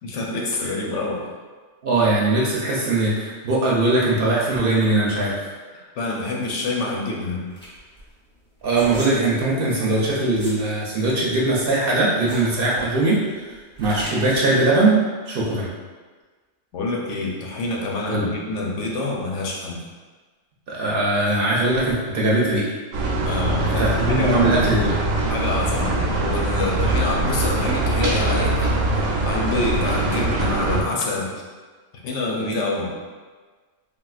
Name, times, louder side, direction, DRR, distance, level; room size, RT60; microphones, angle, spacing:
voice 1, 0.0-1.3 5.7-7.5 16.7-19.8 23.2-24.7 25.3-31.3 32.0-32.9, left 2 dB, 80° left, -2 dB, 0.9 m, -27 dB
voice 2, 1.8-5.3 8.6-15.0 15.3-15.7 18.1-18.3 20.7-22.6 23.6-25.0, right 2 dB, 60° right, -5 dB, 0.7 m, -20 dB
sound 1, 7.0-10.6 11.0-14.4, equal, 5° left, 0.6 m, -38 dB
sound 2, 22.9-30.8, right 2 dB, 90° right, 0.9 m, -22 dB
3.6 x 2.4 x 2.3 m, 1.4 s
omnidirectional pair, 1.2 m